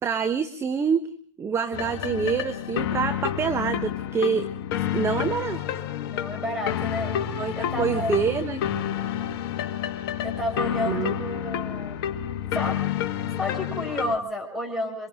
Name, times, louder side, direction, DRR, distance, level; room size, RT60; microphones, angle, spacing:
voice 1, 0.0-1.1 1.4-4.5 4.7-5.8 7.4-8.6 10.8-11.1, right 6 dB, 15° right, 10 dB, 1.2 m, -26 dB
sound 1, 1.7-14.1, left 10 dB, 50° left, 1.7 m, -29 dB
voice 2, 6.1-7.1 7.6-8.1 10.2-12.0 12.5-12.8 13.4-15.1, left 1 dB, ahead, 1 dB, 6.3 m, -30 dB
27.0 x 25.5 x 3.8 m, 0.43 s
hypercardioid pair, 125°, 16 cm